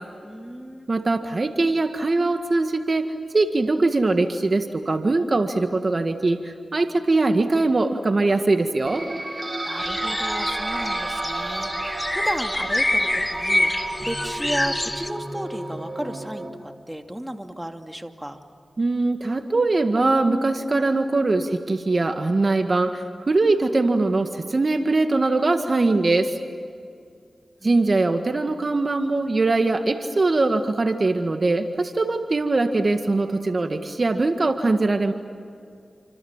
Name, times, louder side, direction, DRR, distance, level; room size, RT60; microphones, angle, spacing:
voice 1, 0.2-0.9 9.6-18.4 27.6-28.0, equal, 10° right, 5 dB, 2.6 m, -34 dB
voice 2, 0.9-3.1 3.3-9.0 18.8-26.3 27.6-35.1, right 2 dB, 50° right, 7 dB, 1.8 m, -22 dB
sound 1, 8.9-16.5, right 1 dB, 30° right, 5.1 m, -31 dB
sound 2, 9.8-15.1, left 1 dB, 20° left, 1.9 m, -26 dB
29.5 x 26.5 x 7.4 m, 2.3 s
cardioid pair, 40°, 0 cm